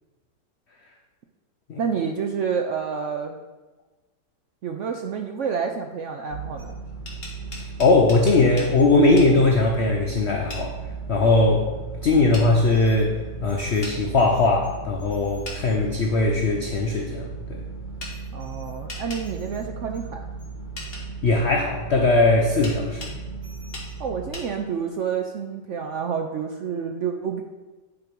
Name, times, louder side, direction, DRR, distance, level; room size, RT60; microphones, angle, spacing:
voice 1, 1.8-3.4 4.6-6.8 18.3-20.3 24.0-27.4, right 6 dB, 85° right, 4 dB, 0.6 m, -29 dB
sound 1, 6.3-24.3, right 4 dB, 55° right, 3.4 m, -36 dB
sound 2, 6.9-8.7 9.2-9.3 10.5-10.7 12.3-12.5 13.8-14.0 15.4-15.6 18.0-18.1 18.9-19.2 20.8-21.0 22.6-23.2 23.7-23.9 24.3-24.5, left 2 dB, 35° left, 1.8 m, -37 dB
voice 2, 7.5-10.7 11.1-11.7 12.0-13.2 13.4-17.6 21.2-23.2, left 2 dB, 55° left, 2 dB, 0.7 m, -20 dB
9.2 x 4.6 x 5.2 m, 1.2 s
omnidirectional pair, 2.0 m